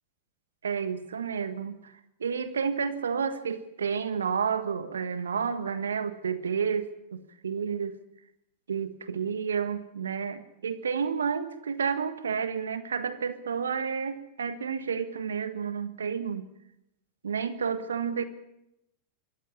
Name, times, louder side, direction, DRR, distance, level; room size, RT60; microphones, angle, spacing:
voice 1, 0.6-1.9 2.2-8.0 8.7-16.4 17.2-18.2, right 6 dB, 75° right, 12 dB, 1.5 m, -30 dB
25.5 x 14.5 x 8.6 m, 0.85 s
figure-of-eight pair, 90°, 0 cm